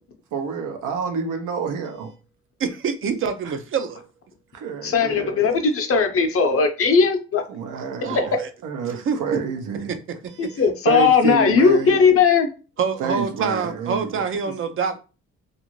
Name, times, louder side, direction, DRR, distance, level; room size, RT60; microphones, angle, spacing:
voice 1, 0.3-2.1 3.4-3.5 4.5-5.4 7.5-8.4 8.6-9.9 10.3-12.0 13.0-14.6, right 5 dB, 85° right, 0.7 m, -28 dB
voice 2, 2.6-4.0 7.7-8.5 9.1-9.2 9.9-10.0 10.4-10.5 12.8-15.0, right 6 dB, 45° right, 0.5 m, -26 dB
voice 3, 4.8-7.4 8.2-8.3 10.4-12.5, left 5 dB, 50° left, 0.7 m, -18 dB
2.5 x 2.5 x 3.0 m
cardioid pair, 90°, 30 cm